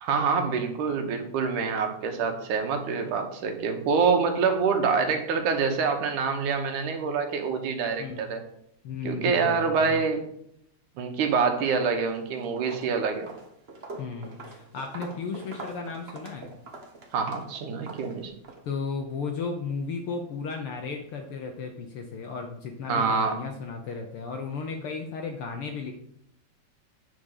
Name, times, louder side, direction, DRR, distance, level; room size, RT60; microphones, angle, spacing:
voice 1, 0.0-8.4 9.0-10.2 11.0-13.3 17.1-18.3 22.9-23.4, right 5 dB, 90° right, 5 dB, 2.7 m, -26 dB
voice 2, 8.8-10.0 14.0-16.5 18.7-25.9, left 4 dB, 75° left, 4 dB, 1.3 m, -34 dB
Walk footsteps, 11.9-12.2 12.6-18.6, right 3 dB, 55° right, 0.6 m, -43 dB
9.3 x 5.0 x 6.5 m, 0.73 s
omnidirectional pair, 3.4 m